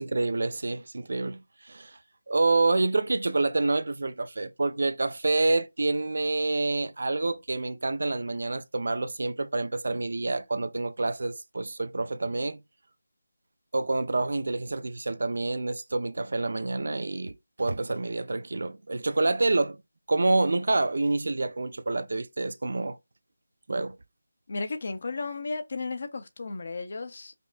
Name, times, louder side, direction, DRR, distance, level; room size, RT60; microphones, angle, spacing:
voice 1, 0.0-2.0 2.3-12.6 13.7-19.8 20.1-23.0 23.7-24.0, right 2 dB, 65° right, 0.5 m, -27 dB
voice 2, 24.5-27.3, left 3 dB, 50° left, 0.7 m, -34 dB
5.2 x 2.1 x 2.5 m
figure-of-eight pair, 165°, 0 cm